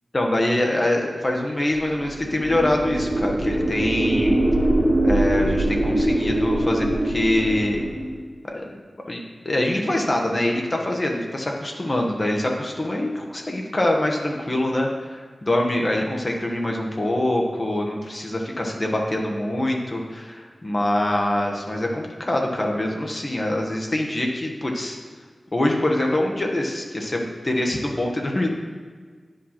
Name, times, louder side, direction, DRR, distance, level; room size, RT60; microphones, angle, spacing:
voice 1, 0.1-4.3 5.0-7.9 8.4-8.6 9.1-25.0 25.5-28.5, left 1 dB, 40° left, 0 dB, 1.2 m, -24 dB
sound 1, 2.0-8.1, right 1 dB, 55° right, 1.3 m, -22 dB
9.0 x 5.2 x 4.3 m, 1.5 s
cardioid pair, 45°, 0 cm